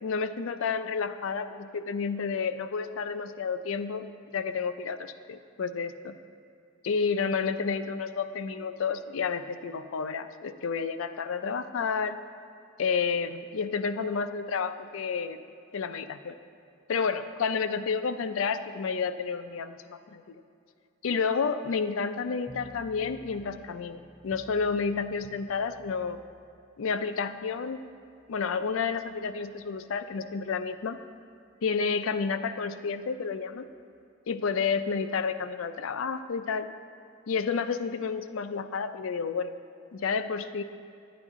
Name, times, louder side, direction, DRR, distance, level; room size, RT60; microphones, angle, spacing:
voice 1, 0.0-4.1 4.3-6.1 6.8-12.2 12.8-15.4 15.7-16.4 16.9-20.4 21.0-26.2 26.8-27.8 28.3-31.0 31.6-33.7 34.3-36.7 37.3-39.5 39.9-40.6, left 5 dB, 70° left, 11 dB, 0.4 m, -30 dB
sound 1, 22.5-33.6, right 1 dB, 5° right, 0.5 m, -55 dB
9.8 x 9.6 x 3.6 m, 2.6 s
head